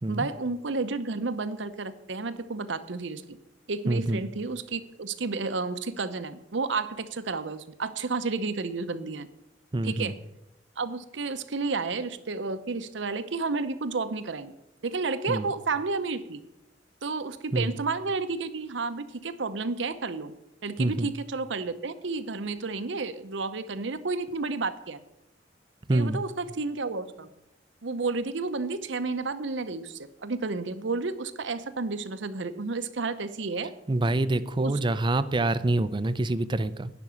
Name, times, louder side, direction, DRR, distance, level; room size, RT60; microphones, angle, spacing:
voice 1, 0.1-3.4 3.7-9.3 9.8-10.2 10.8-14.5 14.8-16.4 17.0-20.3 20.6-25.0 25.9-27.3 27.8-33.7 34.6-34.8, right 3 dB, 70° right, 12 dB, 0.8 m, -31 dB
voice 2, 3.9-4.2 9.7-10.1 15.3-15.5 17.5-17.7 20.8-21.1 25.9-26.2 33.9-36.9, right 2 dB, 25° right, 14 dB, 0.5 m, -26 dB
10.5 x 6.1 x 8.5 m, 0.88 s
head